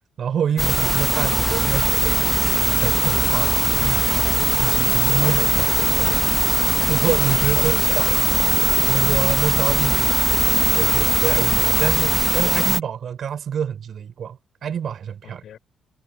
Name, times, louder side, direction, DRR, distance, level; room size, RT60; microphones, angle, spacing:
voice 1, 0.2-2.2 2.8-5.6 6.9-8.2 8.9-10.1 10.7-15.4, right 8 dB, 60° right, 4.2 m, -26 dB
sound 1, 0.6-12.8, equal, 5° right, 1.1 m, -19 dB
voice 2, 3.3-4.1 5.2-6.3 7.5-8.5 9.1-9.4 15.2-15.6, left 9 dB, 70° left, 4.8 m, -36 dB
cardioid pair, 90°, 0 cm